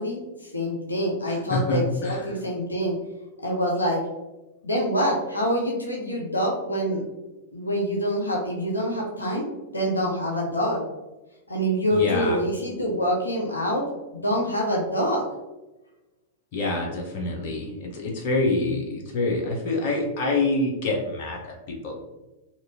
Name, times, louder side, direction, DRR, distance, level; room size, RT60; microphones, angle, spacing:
voice 1, 0.0-3.0 3.4-4.0 4.6-7.0 7.5-10.8 11.5-13.8 14.1-15.2, equal, 90° left, -2 dB, 0.5 m, -26 dB
voice 2, 1.3-2.2 11.9-12.4 16.5-21.9, left 2 dB, 50° left, 0 dB, 0.7 m, -26 dB
2.9 x 2.4 x 2.7 m, 1.0 s
figure-of-eight pair, 100°, 0 cm